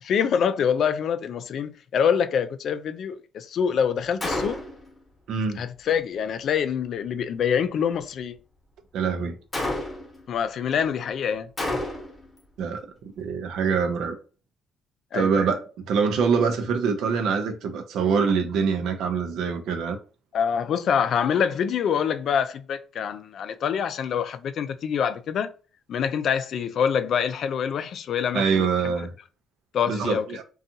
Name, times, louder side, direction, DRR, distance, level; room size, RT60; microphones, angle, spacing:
voice 1, 0.0-4.6 5.6-8.4 10.3-11.5 15.1-15.3 20.3-25.5 25.9-28.9 29.7-30.2, left 7 dB, 65° left, 0.3 m, -25 dB
Gunshot gunfire, 4.2-4.9 9.5-10.2 11.6-12.3, left 1 dB, 25° left, 0.9 m, -29 dB
voice 2, 5.3-5.6 8.9-9.4 12.6-12.8 13.2-14.2 15.1-20.0 28.3-29.1 29.9-30.4, right 5 dB, 85° right, 0.5 m, -24 dB
2.6 x 2.3 x 2.7 m
cardioid pair, 90°, 0 cm